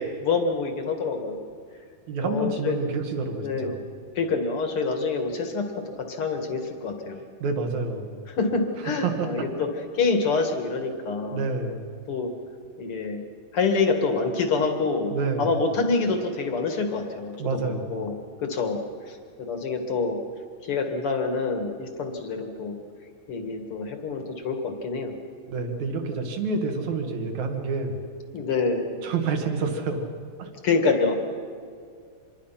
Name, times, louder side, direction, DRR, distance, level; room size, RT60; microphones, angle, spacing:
voice 1, 0.0-1.5 2.2-2.8 3.4-3.7 4.2-5.7 6.0-7.2 8.3-9.7 9.9-11.4 12.1-12.3 12.8-13.2 13.5-15.1 15.4-18.1 18.4-18.8 19.1-20.2 20.6-22.8 23.3-25.1 28.3-28.9 30.6-31.1, left 4 dB, 45° left, 5 dB, 2.1 m, -26 dB
voice 2, 2.1-3.8 7.4-8.2 8.8-9.5 11.3-11.9 15.1-15.5 17.4-17.9 25.5-28.0 29.0-30.1 30.4-30.5, right 4 dB, 55° right, 5 dB, 2.9 m, -28 dB
26.0 x 21.5 x 5.8 m, 2.2 s
omnidirectional pair, 4.3 m